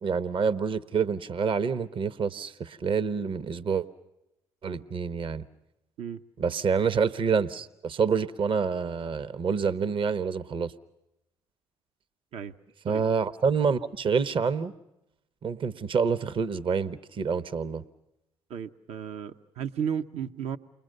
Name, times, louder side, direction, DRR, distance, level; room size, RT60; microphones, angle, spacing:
voice 1, 0.0-3.9 4.6-5.4 6.4-10.7 12.8-14.7 15.4-17.8, right 6 dB, 50° right, 16 dB, 1.1 m, -27 dB
voice 2, 18.5-20.6, right 8 dB, 70° right, 9 dB, 1.0 m, -34 dB
29.0 x 22.0 x 6.7 m, 0.89 s
supercardioid pair, 60°, 11 cm